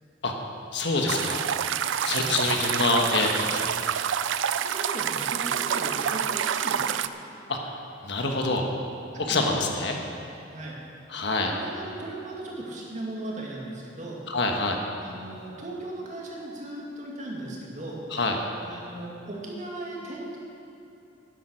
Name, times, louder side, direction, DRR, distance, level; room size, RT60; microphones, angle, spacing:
voice 1, 0.7-1.5 2.0-3.7 7.5-7.8 8.0-8.7 9.2-10.0 11.1-11.5 14.3-14.8 18.1-18.4, left 3 dB, 65° left, 2 dB, 1.3 m, -26 dB
sound 1, 1.1-7.1, right 8 dB, 80° right, 0.4 m, -27 dB
voice 2, 4.4-6.9 9.3-9.5 10.5-10.8 11.5-14.2 15.0-18.0 18.6-20.4, right 2 dB, 40° right, -3 dB, 2.2 m, -37 dB
11.0 x 10.0 x 6.4 m, 3.0 s
head